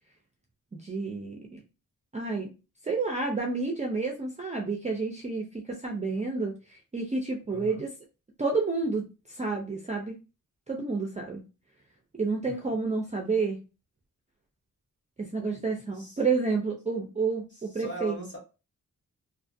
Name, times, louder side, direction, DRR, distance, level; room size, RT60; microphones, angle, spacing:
voice 1, 0.7-1.6 2.1-2.5 2.8-7.9 8.4-10.2 10.7-11.4 12.2-13.6 15.2-18.2, right 4 dB, 20° right, 1 dB, 0.4 m, -30 dB
voice 2, 7.5-7.8 12.5-12.6 15.5-15.6 15.9-16.2 17.5-18.4, right 1 dB, 30° left, -2 dB, 1.3 m, -40 dB
2.5 x 2.4 x 2.5 m, 0.30 s
wide cardioid pair, 150°, 34 cm